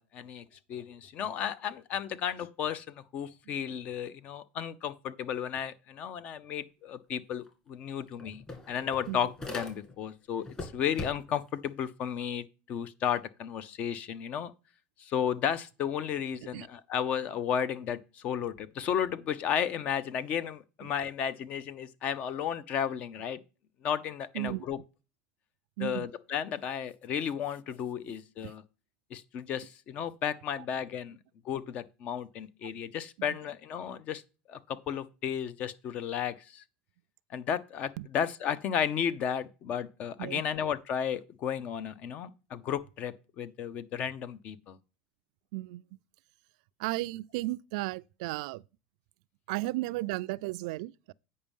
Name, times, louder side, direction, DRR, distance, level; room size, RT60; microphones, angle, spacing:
voice 1, 0.0-14.5 15.0-23.4 23.8-24.8 25.8-28.6 29.1-31.2 31.4-34.2 34.5-36.6 37.3-44.8, left 8 dB, 40° left, 0.7 m, -33 dB
sound 1, 7.5-7.6 7.8-10.1 10.4-11.5, left 2 dB, 20° left, 2.4 m, -41 dB
voice 2, 24.3-24.7 25.8-26.1 28.4-28.5 32.6-32.7 38.0-38.1 40.2-40.4 45.5-45.8 46.8-48.6 49.5-51.1, right 20 dB, 75° right, 0.3 m, -34 dB
8.6 x 5.3 x 5.3 m
supercardioid pair, 145°, 3 cm